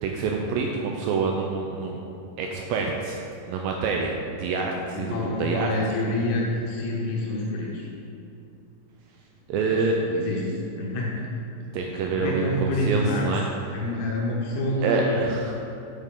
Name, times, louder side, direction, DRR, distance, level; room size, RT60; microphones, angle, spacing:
voice 1, 0.0-2.0 2.4-3.2 3.5-5.7 9.5-10.0 11.7-13.4 14.8-15.5, right 4 dB, 85° right, 1 dB, 2.0 m, -26 dB
voice 2, 4.9-7.9 9.7-11.2 12.1-13.3 13.7-15.2, left 1 dB, 80° left, -3 dB, 2.9 m, -27 dB
8.3 x 7.4 x 3.7 m, 2.7 s
omnidirectional pair, 4.6 m